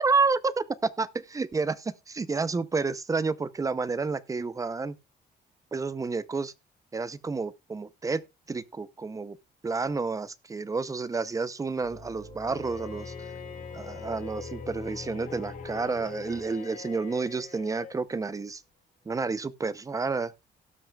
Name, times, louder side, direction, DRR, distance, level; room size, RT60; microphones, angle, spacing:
voice 1, 0.0-4.9 5.7-6.5 6.9-8.2 8.5-9.4 9.6-13.1 13.7-18.6 19.1-20.3, right 4 dB, 20° right, 0.6 m, -30 dB
sound 1, 11.8-18.0, left 4 dB, 25° left, 2.5 m, -43 dB
Bowed string instrument, 12.5-18.0, left 7 dB, 50° left, 3.2 m, -46 dB
17.5 x 6.1 x 2.3 m
cardioid pair, 135°, 18 cm